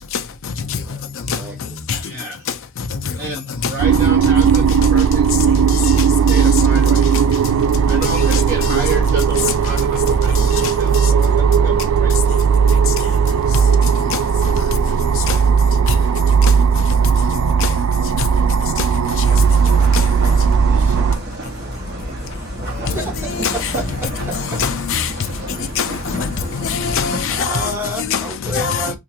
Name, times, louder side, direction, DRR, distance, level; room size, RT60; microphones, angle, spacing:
voice 1, 0.6-1.6 22.6-23.4 23.8-24.3 27.3-29.0, right 1 dB, 10° right, 1.5 m, -30 dB
voice 2, 1.9-2.5 3.1-4.6 4.9-5.2 6.3-7.2 7.8-12.4 14.8-15.0 16.0-16.2 18.3-18.5 20.7-23.1 25.1-25.3, right 3 dB, 35° right, 1.5 m, -32 dB
sound 1, 3.8-21.2, right 6 dB, 80° right, 0.4 m, -15 dB
sound 2, 19.2-27.4, equal, 55° right, 1.4 m, -29 dB
voice 3, 24.6-25.1 25.8-26.3 26.6-27.7 28.0-28.2 28.5-29.0, left 6 dB, 65° left, 0.6 m, -22 dB
3.7 x 2.7 x 2.8 m
head